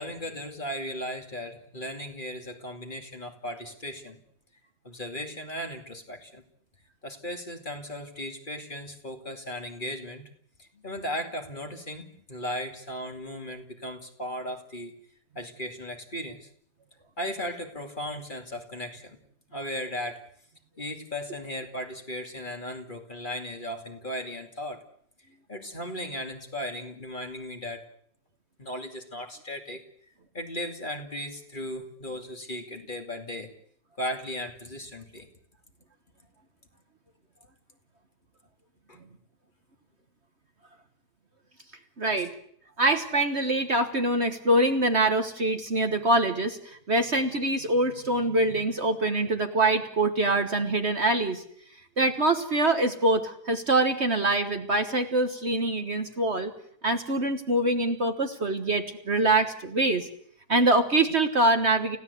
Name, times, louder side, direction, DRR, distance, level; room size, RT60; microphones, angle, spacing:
voice 1, 0.0-4.2 4.8-6.4 7.0-10.3 10.6-14.9 15.4-16.5 17.2-19.2 19.5-20.2 20.8-24.8 25.5-27.8 28.6-33.5 34.0-35.3 38.9-39.0 42.2-42.3, equal, 30° left, 5 dB, 2.6 m, -36 dB
voice 2, 42.0-42.3 42.8-51.4 52.0-56.5 56.8-60.1 60.5-62.0, right 2 dB, 45° right, 7 dB, 1.6 m, -24 dB
29.5 x 16.0 x 8.3 m, 0.65 s
omnidirectional pair, 1.7 m